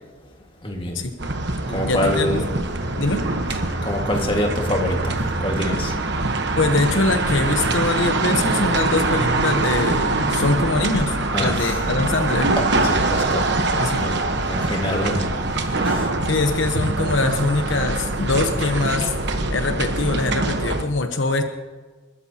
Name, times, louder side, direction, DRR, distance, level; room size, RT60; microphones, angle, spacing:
voice 1, 0.6-1.0 1.7-2.4 3.9-5.9 11.3-11.8 12.6-13.4 14.0-14.2 14.4-15.3 15.9-16.1, left 1 dB, 25° left, 1 dB, 2.0 m, -25 dB
sound 1, 1.2-20.8, right 2 dB, 55° right, 1.2 m, -23 dB
voice 2, 1.8-2.4 3.0-3.2 6.6-12.5 13.8-14.0 16.3-19.1 19.5-21.4, left 3 dB, 70° left, 6 dB, 1.0 m, -23 dB
29.5 x 13.0 x 2.9 m, 1.4 s
head